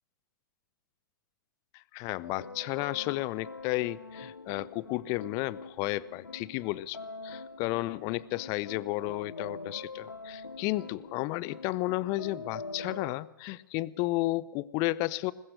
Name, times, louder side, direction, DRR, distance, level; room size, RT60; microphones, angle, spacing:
voice 1, 1.7-7.0 7.2-15.3, left 19 dB, 30° left, 21 dB, 0.6 m, -32 dB
sound 1, 2.2-13.2, left 3 dB, 85° left, 0.6 m, -44 dB
21.0 x 20.5 x 6.4 m, 1.1 s
figure-of-eight pair, 110°, 11 cm